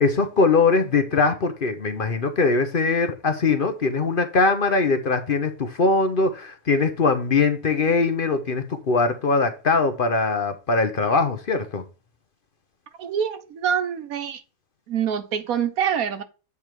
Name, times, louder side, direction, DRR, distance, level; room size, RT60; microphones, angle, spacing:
voice 1, 0.0-11.8, left 4 dB, 45° left, 0.8 m, -21 dB
voice 2, 13.0-14.4 14.9-16.2, right 8 dB, 85° right, 1.3 m, -25 dB
8.2 x 3.6 x 4.5 m
omnidirectional pair, 1.5 m